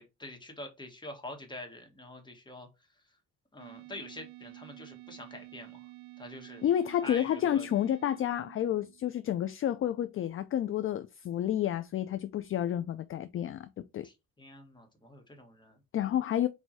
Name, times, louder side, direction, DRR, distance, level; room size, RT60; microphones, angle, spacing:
voice 1, 0.0-2.7 3.5-5.9 6.2-6.7 7.0-7.7 14.0-15.8, left 1 dB, 15° left, 1.5 m, -46 dB
sound 1, 3.6-9.1, right 20 dB, 70° right, 0.5 m, -50 dB
voice 2, 6.6-14.1 15.9-16.5, left 11 dB, 45° left, 0.4 m, -30 dB
4.6 x 2.7 x 4.0 m
cardioid pair, 90°, 30 cm